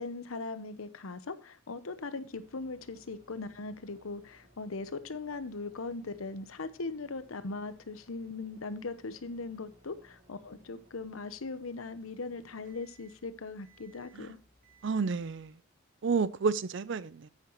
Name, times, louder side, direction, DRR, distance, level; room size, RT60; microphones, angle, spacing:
voice 1, 0.0-14.4, left 3 dB, 85° left, 0.8 m, -39 dB
sound 1, 2.3-15.5, right 1 dB, 40° right, 2.1 m, -63 dB
voice 2, 14.8-15.6 16.0-17.3, right 5 dB, 60° right, 0.4 m, -30 dB
9.5 x 8.3 x 3.0 m
head